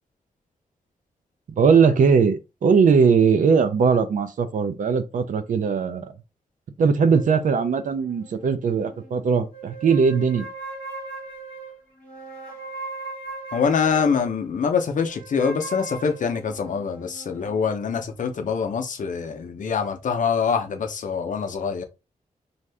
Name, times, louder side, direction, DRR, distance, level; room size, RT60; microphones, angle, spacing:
voice 1, 1.5-6.1 6.8-10.5, right 5 dB, 65° right, 0.5 m, -19 dB
sound 1, 7.1-9.1 9.5-14.4 15.1-17.7, right 3 dB, 10° left, 1.2 m, -39 dB
voice 2, 13.5-21.8, left 6 dB, 65° left, 0.6 m, -24 dB
2.6 x 2.3 x 3.3 m
wide cardioid pair, 130°, 14 cm